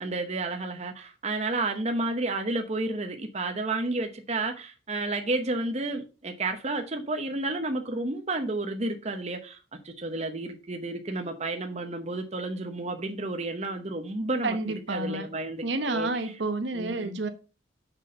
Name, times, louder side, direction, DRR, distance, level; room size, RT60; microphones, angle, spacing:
voice 1, 0.0-14.6 14.9-16.3 16.7-17.1, right 2 dB, 35° right, 0.9 m, -31 dB
voice 2, 14.4-15.3 15.6-17.3, right 2 dB, 65° right, 1.1 m, -30 dB
6.5 x 6.2 x 5.4 m
head